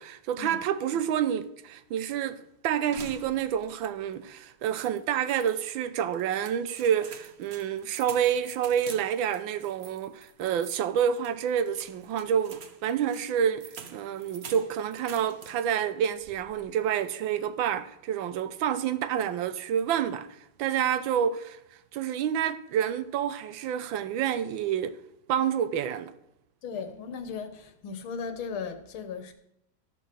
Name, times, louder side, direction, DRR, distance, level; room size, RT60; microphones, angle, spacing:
voice 1, 0.0-21.6 21.9-25.0 25.3-26.1, right 9 dB, 80° right, 1.4 m, -28 dB
sound 1, 2.9-3.8 4.1-4.2 4.7-5.5 6.1-15.8 16.2-16.7, right 6 dB, 60° right, 0.6 m, -48 dB
voice 2, 26.6-29.3, left 6 dB, 90° left, 1.9 m, -37 dB
13.0 x 6.1 x 6.2 m
omnidirectional pair, 2.2 m